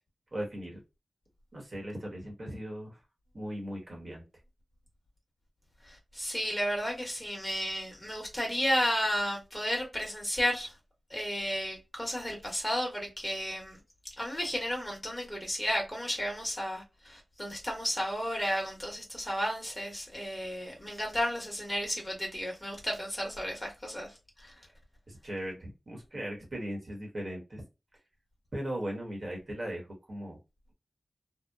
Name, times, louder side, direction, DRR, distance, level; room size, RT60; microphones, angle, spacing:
voice 1, 0.3-0.8 1.5-3.0 3.3-4.2 25.1-27.6 28.5-30.4, equal, 45° right, 1.1 m, -38 dB
voice 2, 6.1-10.7 11.1-13.8 14.2-24.1, equal, 20° left, 1.3 m, -33 dB
2.8 x 2.1 x 2.3 m
wide cardioid pair, 90°, 0 cm